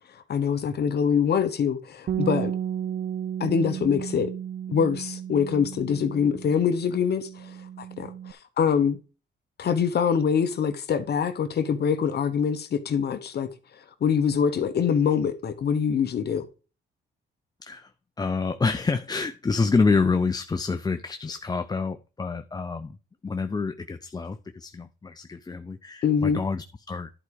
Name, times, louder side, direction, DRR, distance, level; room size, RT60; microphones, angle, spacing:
voice 1, 0.1-2.5 3.4-4.3 4.7-9.0 9.6-13.5 14.0-16.5 26.0-26.4, left 7 dB, 55° left, 1.0 m, -24 dB
Bass guitar, 2.1-8.3, right 9 dB, 45° right, 0.5 m, -33 dB
voice 2, 18.2-23.0 23.2-27.1, left 4 dB, 20° left, 0.6 m, -27 dB
11.0 x 4.8 x 4.7 m
cardioid pair, 90°, 20 cm